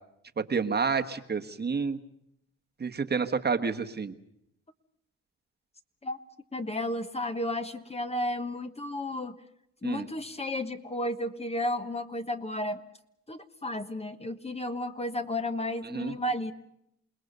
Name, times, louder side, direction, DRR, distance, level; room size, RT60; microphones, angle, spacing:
voice 1, 0.4-2.0 2.8-4.1 9.8-10.1 15.9-16.1, right 5 dB, 35° right, 6 dB, 1.5 m, -29 dB
voice 2, 6.5-9.3 9.8-12.8 13.3-16.5, left 1 dB, 20° left, 8 dB, 1.3 m, -33 dB
28.0 x 19.5 x 6.8 m, 0.78 s
cardioid pair, 90°, 30 cm